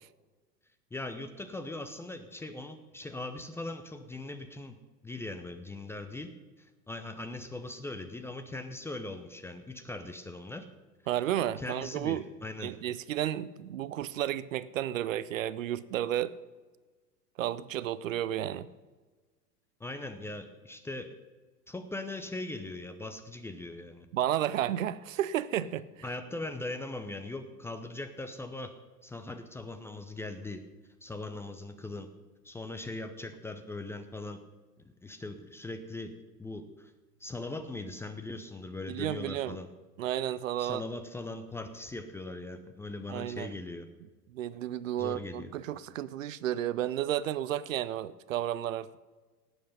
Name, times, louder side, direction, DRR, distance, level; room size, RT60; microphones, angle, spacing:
voice 1, 0.9-4.8 5.0-6.3 6.6-10.7 11.6-12.7 19.8-21.1 21.7-24.1 26.0-28.7 29.0-30.6 31.0-32.1 32.4-34.4 35.0-36.1 36.4-36.9 37.2-39.7 40.6-43.9 45.0-45.5, left 2 dB, 5° left, 7 dB, 0.6 m, -40 dB
voice 2, 11.1-12.3 12.6-16.3 17.4-18.7 24.1-25.9 38.9-39.6 40.0-40.9 43.1-43.5 44.3-48.9, right 12 dB, 55° right, 18 dB, 0.7 m, -32 dB
17.5 x 8.1 x 5.4 m, 1.3 s
figure-of-eight pair, 95°, 48 cm